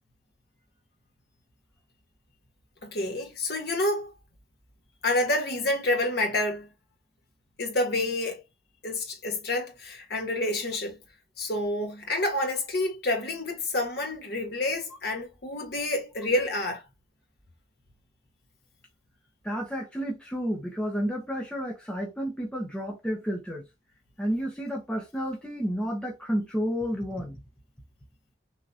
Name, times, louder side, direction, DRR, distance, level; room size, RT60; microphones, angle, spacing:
voice 1, 2.8-4.1 5.0-6.7 7.6-8.4 8.8-11.0 11.4-16.8, left 1 dB, 55° left, 1.7 m, -28 dB
voice 2, 19.4-23.7 24.2-27.4, equal, 5° left, 1.1 m, -31 dB
6.1 x 2.8 x 2.9 m
head